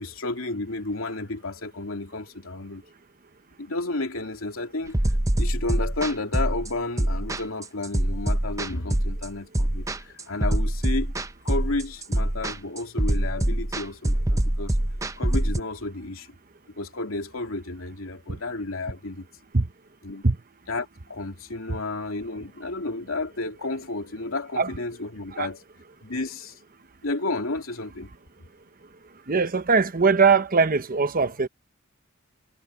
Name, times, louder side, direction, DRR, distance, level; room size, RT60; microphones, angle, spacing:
voice 1, 0.0-2.8 3.6-5.0 5.4-11.1 11.4-14.8 15.2-16.3 16.8-19.3 20.0-20.2 20.7-25.6 26.0-26.6 27.0-28.1 28.4-28.5, left 2 dB, 85° left, 2.8 m, -32 dB
sound 1, 4.9-15.6, right 1 dB, 15° right, 0.7 m, -24 dB
voice 2, 29.3-31.5, right 4 dB, 45° right, 0.9 m, -21 dB
head